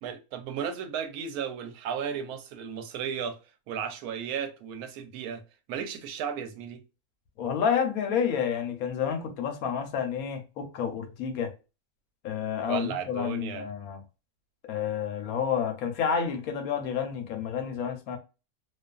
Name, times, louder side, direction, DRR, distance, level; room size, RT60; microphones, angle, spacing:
voice 1, 0.0-3.4 3.7-5.4 5.7-6.8 12.7-13.7, right 7 dB, 90° right, 1.1 m, -34 dB
voice 2, 7.4-11.5 12.2-14.0 14.7-18.2, left 7 dB, 75° left, 1.0 m, -29 dB
2.5 x 2.4 x 2.2 m
omnidirectional pair, 1.5 m